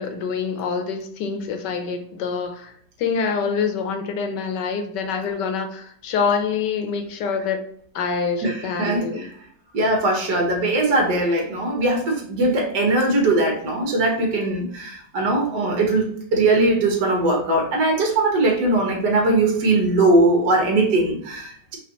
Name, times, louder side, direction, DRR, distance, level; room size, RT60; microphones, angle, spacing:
voice 1, 0.0-7.6 7.9-9.3, left 5 dB, 75° left, 6 dB, 1.2 m, -26 dB
voice 2, 8.4-9.0 9.7-21.8, right 2 dB, 70° right, 1 dB, 1.7 m, -20 dB
5.0 x 2.5 x 2.9 m, 0.65 s
omnidirectional pair, 2.0 m